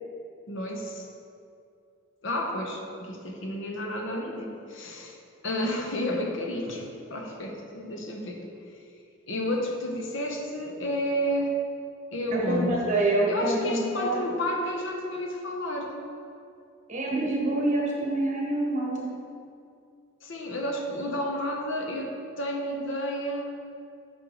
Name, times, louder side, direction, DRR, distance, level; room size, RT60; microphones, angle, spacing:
voice 1, 0.5-1.1 2.2-5.2 5.4-8.5 9.3-11.5 12.1-12.8 13.3-15.9 20.2-23.5, equal, 65° left, 1 dB, 0.9 m, -31 dB
voice 2, 12.3-14.2 16.9-19.1, right 2 dB, 35° right, -3 dB, 1.3 m, -26 dB
10.0 x 5.5 x 3.1 m, 2.5 s
head